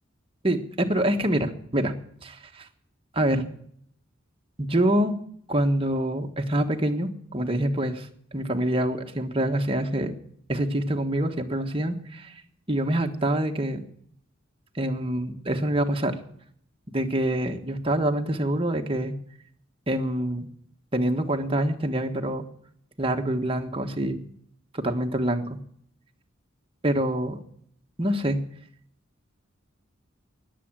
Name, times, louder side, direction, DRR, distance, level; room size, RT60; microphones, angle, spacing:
voice 1, 0.9-1.9 2.2-2.7 3.1-3.4 4.6-5.2 5.5-8.1 8.3-10.1 10.5-12.3 12.7-13.8 14.7-16.2 16.9-19.1 19.9-20.5 20.9-22.4 23.0-24.2 24.7-25.6 26.8-27.4 28.0-28.4, right 1 dB, 25° right, 4 dB, 1.5 m, -25 dB
19.5 x 7.7 x 7.5 m, 0.65 s
head